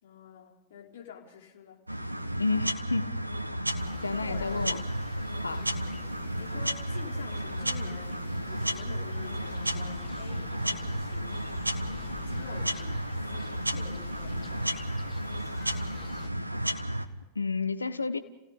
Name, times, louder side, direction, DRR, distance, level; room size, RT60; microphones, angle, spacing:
voice 1, 0.0-1.8 4.1-5.0 5.5-5.7 6.3-11.4 11.9-14.7, left 8 dB, 60° left, 0 dB, 4.3 m, -47 dB
sound 1, 1.9-17.1, right 1 dB, 85° right, 1.2 m, -33 dB
voice 2, 2.4-3.2 4.0-4.9 5.4-5.7 17.3-18.2, left 3 dB, 80° left, 11 dB, 0.8 m, -30 dB
sound 2, 3.8-16.3, left 7 dB, 25° left, 1.7 m, -48 dB
29.5 x 17.0 x 5.2 m, 0.97 s
figure-of-eight pair, 90°, 0 cm